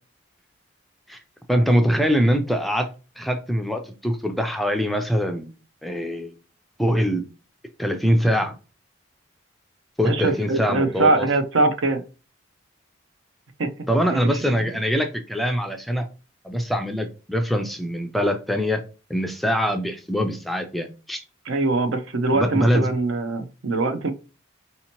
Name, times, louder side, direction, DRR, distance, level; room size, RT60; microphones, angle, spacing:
voice 1, 1.5-5.5 5.8-6.3 6.8-7.2 7.8-8.5 10.0-11.3 13.9-16.1 16.4-18.8 19.1-21.2 22.3-22.9, equal, ahead, 0.3 m, -23 dB
voice 2, 10.0-12.0 13.6-13.7 14.1-14.5 21.5-24.1, right 2 dB, 70° right, 0.6 m, -22 dB
4.2 x 2.8 x 2.9 m
head